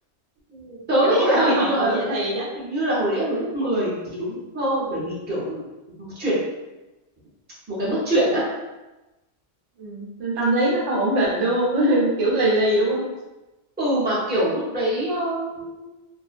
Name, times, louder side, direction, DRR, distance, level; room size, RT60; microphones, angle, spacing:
voice 1, 0.5-2.0 2.5-5.6 6.0-6.4 7.7-8.5 13.8-15.9, right 1 dB, 10° right, -8 dB, 0.6 m, -24 dB
voice 2, 1.0-2.5 9.8-13.0, right 1 dB, 80° right, -4 dB, 1.0 m, -22 dB
2.5 x 2.0 x 2.4 m, 1.1 s
omnidirectional pair, 1.2 m